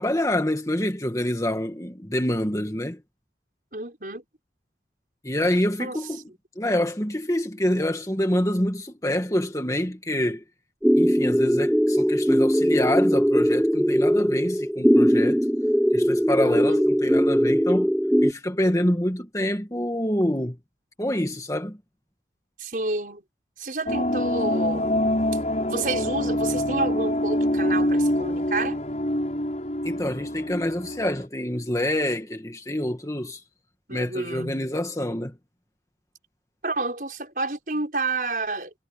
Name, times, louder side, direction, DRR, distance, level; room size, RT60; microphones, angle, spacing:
voice 1, 0.0-3.0 5.2-6.3 6.6-10.4 11.0-15.4 15.9-17.9 18.2-20.6 21.0-21.8 29.8-33.4 33.9-35.4, left 1 dB, 20° left, 2.0 m, -26 dB
voice 2, 3.7-4.2 5.8-6.0 16.4-16.8 22.6-23.2 23.6-25.0 25.7-28.8 33.9-34.7 36.6-38.7, right 2 dB, 50° right, 6.2 m, -29 dB
sound 1, 10.8-18.3, equal, ahead, 0.7 m, -20 dB
sound 2, 23.9-31.2, left 1 dB, 40° left, 7.3 m, -25 dB
head